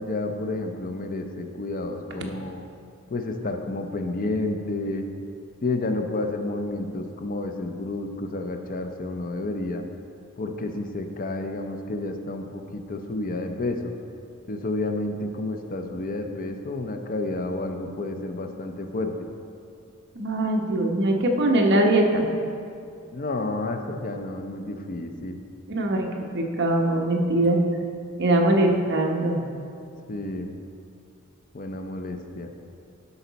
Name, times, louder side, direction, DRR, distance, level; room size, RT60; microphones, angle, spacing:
voice 1, 0.0-2.6 3.1-5.0 5.6-9.8 10.4-13.9 14.5-19.1 23.1-25.4 30.1-30.5 31.5-32.5, left 2 dB, 40° left, 5 dB, 0.5 m, -30 dB
voice 2, 20.2-22.3 25.7-27.6 28.2-29.4, right 1 dB, 50° right, 1 dB, 0.9 m, -22 dB
11.0 x 5.5 x 4.0 m, 2.4 s
head